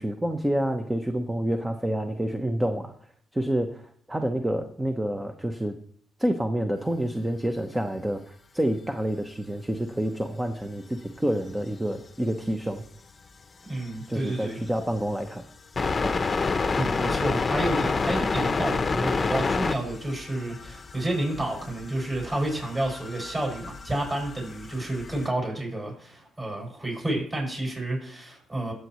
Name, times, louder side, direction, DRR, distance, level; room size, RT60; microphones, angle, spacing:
voice 1, 0.0-2.9 3.3-3.8 4.1-5.7 6.2-12.8 14.1-15.4 15.9-16.1, right 1 dB, 10° right, 6 dB, 0.9 m, -28 dB
sound 1, 11.7-11.8 14.9-15.0 15.7-25.3, left 4 dB, 30° left, 0.8 m, -29 dB
voice 2, 13.7-14.6 16.8-28.7, right 1 dB, 25° right, -1 dB, 6.3 m, -30 dB
22.5 x 7.9 x 3.1 m, 0.63 s
cardioid pair, 90°, 0 cm